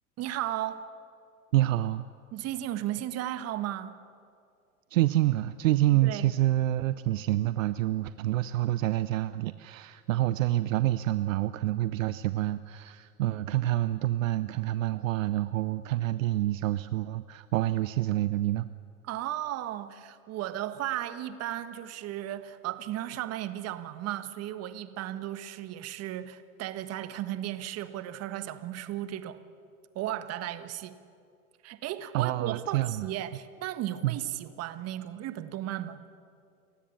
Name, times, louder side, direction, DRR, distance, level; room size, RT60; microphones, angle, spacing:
voice 1, 0.2-0.8 2.3-4.0 6.0-6.3 19.0-29.4 29.9-31.0 31.6-36.0, right 13 dB, 35° right, 1.4 m, -35 dB
voice 2, 1.5-2.0 4.9-18.7 32.1-33.0 34.0-34.2, right 15 dB, 65° right, 0.7 m, -27 dB
29.0 x 15.5 x 7.0 m
hypercardioid pair, 95°, 43 cm